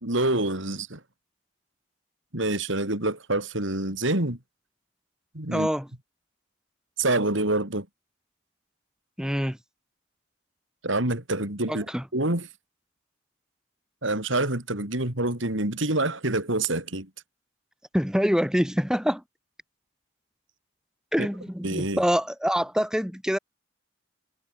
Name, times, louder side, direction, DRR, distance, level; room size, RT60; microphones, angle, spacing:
voice 1, 0.0-1.0 2.3-4.4 5.3-5.7 7.0-7.9 10.8-11.9 12.1-12.5 14.0-17.1 21.6-22.0, right 2 dB, 65° right, 3.8 m, -26 dB
voice 2, 5.5-5.9 9.2-9.6 11.7-12.1 17.9-19.2 21.1-23.4, equal, 5° right, 3.9 m, -25 dB
head